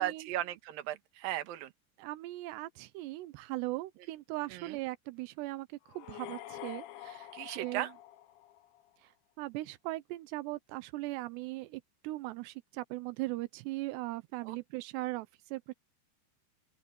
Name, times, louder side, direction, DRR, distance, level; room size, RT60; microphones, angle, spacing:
voice 1, 0.0-1.7 4.5-4.8 7.3-7.9 14.5-14.6, right 13 dB, 65° right, 2.9 m, -36 dB
voice 2, 2.0-5.7 5.9-7.9 9.4-15.7, right 19 dB, 90° right, 2.9 m, -39 dB
sound 1, 5.9-8.9, left 13 dB, 80° left, 1.8 m, -47 dB
open air
omnidirectional pair, 4.8 m